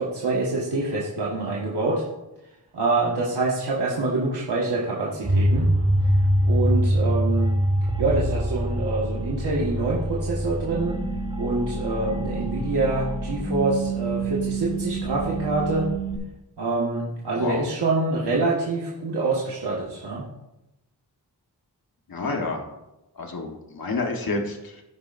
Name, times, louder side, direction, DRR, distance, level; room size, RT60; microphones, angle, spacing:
voice 1, 0.0-2.0 2.7-5.7 6.0-6.1 6.4-7.6 8.0-10.9 11.4-15.9 16.6-20.3, right 3 dB, 80° right, -5 dB, 1.5 m, -26 dB
sound 1, 5.2-16.2, right 1 dB, 15° right, 1.2 m, -25 dB
voice 2, 17.4-17.7 22.1-22.6 23.2-24.8, left 3 dB, 60° left, 2 dB, 1.3 m, -29 dB
15.0 x 5.2 x 2.5 m, 0.95 s
cardioid pair, 50°, 39 cm